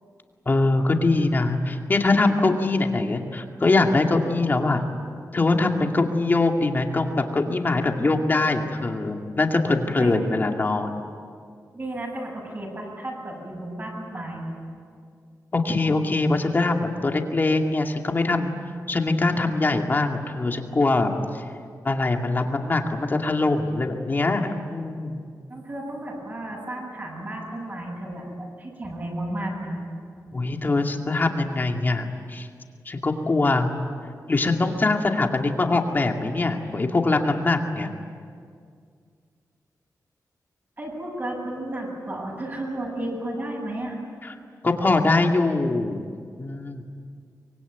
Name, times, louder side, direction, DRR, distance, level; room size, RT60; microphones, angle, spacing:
voice 1, 0.5-4.8 5.3-11.0 15.5-18.5 18.9-21.4 21.8-25.2 30.3-32.5 32.9-33.7 34.3-37.9 44.2-44.3 44.6-46.0 46.4-46.8, left 2 dB, 30° left, 3 dB, 2.3 m, -23 dB
voice 2, 10.0-10.3 11.7-14.5 19.4-19.5 25.5-28.3 28.6-29.8 40.8-44.0, right 1 dB, 30° right, -3 dB, 7.7 m, -33 dB
25.0 x 23.0 x 9.4 m, 2.2 s
wide cardioid pair, 145°, 7 cm